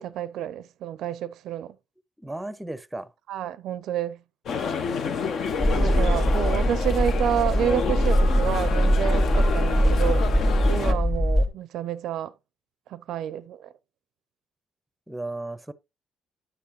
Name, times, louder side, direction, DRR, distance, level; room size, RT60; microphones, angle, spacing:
voice 1, 0.0-1.8 3.3-4.2 5.7-10.3 10.7-12.3 12.9-13.7, right 10 dB, 80° right, 0.4 m, -29 dB
voice 2, 2.2-3.1 5.9-6.4 9.3-9.5 10.8-11.0 15.1-15.7, right 2 dB, 5° right, 0.6 m, -36 dB
sound 1, 4.5-10.9, left 6 dB, 60° left, 0.8 m, -29 dB
sound 2, 5.6-11.5, equal, 20° left, 1.7 m, -22 dB
9.9 x 6.7 x 2.9 m
cardioid pair, 100°, 0 cm